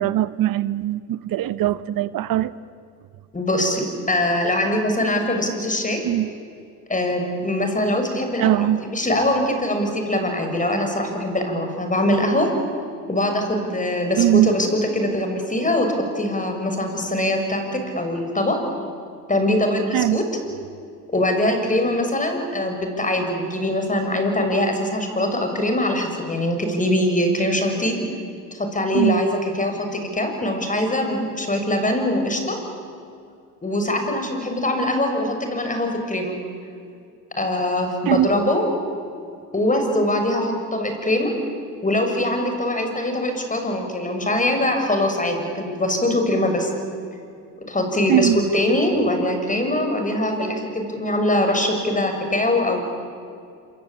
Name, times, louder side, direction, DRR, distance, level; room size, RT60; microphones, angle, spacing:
voice 1, 0.0-2.5 6.0-6.3 8.4-8.8 14.2-14.5 19.9-20.2 28.9-29.2 38.1-38.3 48.1-48.4, right 13 dB, 45° right, 1.0 m, -20 dB
voice 2, 3.3-6.0 6.9-12.5 13.1-18.6 19.3-20.2 21.1-28.0 28.5-32.6 33.6-36.3 37.4-38.6 39.5-41.3 41.8-46.7 47.7-52.8, left 1 dB, 15° left, 6.7 m, -22 dB
26.5 x 25.5 x 8.7 m
hypercardioid pair, 80°, 46 cm